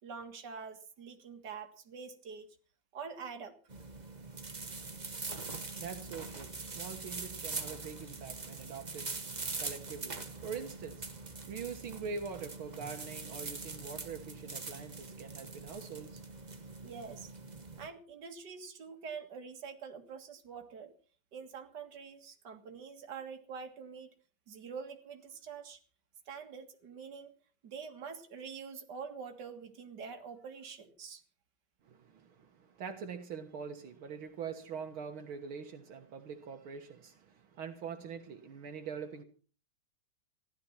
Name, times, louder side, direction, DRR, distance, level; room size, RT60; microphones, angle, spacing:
voice 1, 0.0-2.5 2.9-3.6 16.8-17.3 17.8-20.9 21.3-24.1 24.5-25.8 26.3-27.3 27.6-31.2, right 6 dB, 55° right, 2.5 m, -45 dB
sound 1, 3.7-17.9, right 3 dB, 25° right, 1.3 m, -43 dB
voice 2, 5.4-16.6 31.8-39.2, right 6 dB, 75° right, 2.2 m, -44 dB
15.5 x 12.5 x 5.9 m
omnidirectional pair, 2.3 m